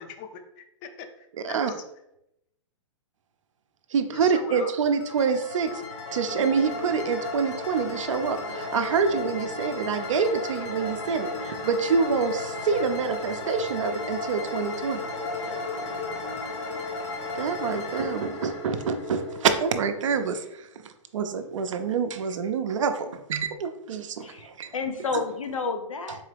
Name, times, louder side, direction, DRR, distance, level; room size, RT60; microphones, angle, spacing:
voice 1, 0.0-1.8 4.1-4.7 24.3-24.4, left 6 dB, 35° left, 7 dB, 0.5 m, -41 dB
voice 2, 3.9-5.8 6.1-15.0 17.3-24.7 25.1-25.2, right 5 dB, 70° right, 8 dB, 0.5 m, -27 dB
sound 1, 5.0-19.8, left 3 dB, 65° left, 0.8 m, -35 dB
sound 2, 6.1-20.4, equal, 45° right, 0.8 m, -41 dB
voice 3, 24.2-26.2, left 4 dB, 85° left, 6 dB, 0.6 m, -31 dB
3.9 x 2.9 x 3.3 m, 0.84 s
hypercardioid pair, 120°, 17 cm